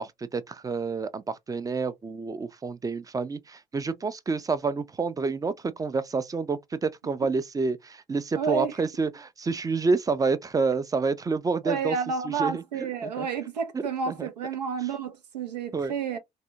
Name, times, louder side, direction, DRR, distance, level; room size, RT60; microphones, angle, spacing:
voice 1, 0.0-12.0 12.2-13.3 13.7-14.3 15.7-15.9, right 4 dB, 15° right, 0.4 m, -29 dB
voice 2, 8.3-8.7 11.6-16.2, right 5 dB, 80° right, 0.5 m, -30 dB
3.4 x 2.0 x 2.7 m
figure-of-eight pair, 45°, 21 cm